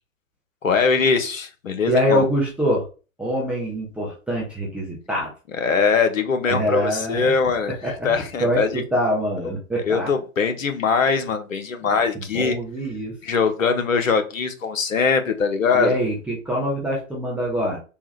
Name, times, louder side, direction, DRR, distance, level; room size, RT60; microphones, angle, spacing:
voice 1, 0.6-2.2 5.5-8.8 9.4-9.5 9.9-12.6 13.2-16.0, left 5 dB, 80° left, 7 dB, 0.9 m, -22 dB
voice 2, 1.9-2.9 3.2-5.3 6.4-7.3 7.8-8.1 8.4-10.1 11.8-13.2 15.7-17.8, equal, 5° right, -4 dB, 0.5 m, -24 dB
3.6 x 2.4 x 3.1 m, 0.33 s
hypercardioid pair, 120°, 39 cm